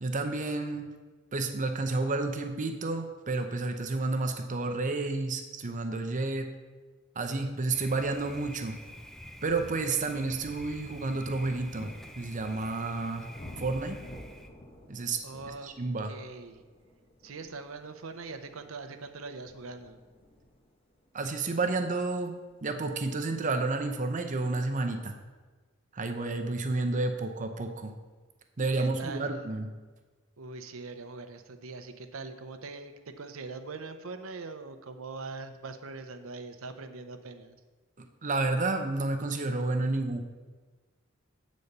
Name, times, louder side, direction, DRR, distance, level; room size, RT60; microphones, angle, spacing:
voice 1, 0.0-0.9 1.3-6.5 7.2-8.8 9.4-13.3 13.6-14.0 14.9-15.2 15.6-16.1 21.1-22.3 22.6-25.1 25.9-27.9 28.6-29.7 38.0-40.2, right 3 dB, 35° right, 5 dB, 0.6 m, -30 dB
Thunder, 7.7-14.5, equal, ahead, 0.4 m, -47 dB
sound 1, 10.4-23.9 24.8-24.9, left 1 dB, 25° left, 1.0 m, -53 dB
voice 2, 15.2-15.7 16.0-16.6 17.2-20.0 28.6-29.3 30.4-37.6, right 3 dB, 70° right, 7 dB, 0.7 m, -42 dB
8.1 x 4.2 x 6.6 m, 1.3 s
head